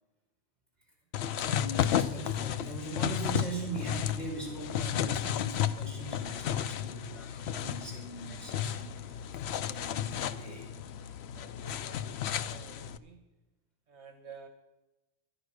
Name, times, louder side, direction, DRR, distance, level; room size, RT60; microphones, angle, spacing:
sound 1, 1.1-13.0, left 10 dB, 70° left, 0.8 m, -33 dB
voice 1, 1.3-10.7, right 3 dB, ahead, -5 dB, 5.4 m, -41 dB
voice 2, 11.3-13.2 13.9-14.5, right 5 dB, 70° right, 5 dB, 1.5 m, -52 dB
12.0 x 11.0 x 6.2 m, 1.0 s
omnidirectional pair, 1.2 m